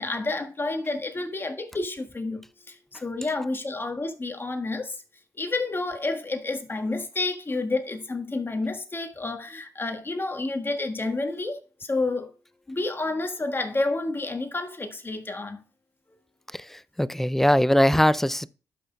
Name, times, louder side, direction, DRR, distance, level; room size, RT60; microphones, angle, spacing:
voice 1, 0.0-5.0 5.4-12.3 12.7-15.6, left 2 dB, 30° left, 1.5 m, -30 dB
voice 2, 16.5-18.5, equal, 5° left, 0.4 m, -21 dB
12.5 x 5.9 x 2.3 m
supercardioid pair, 50°, 7 cm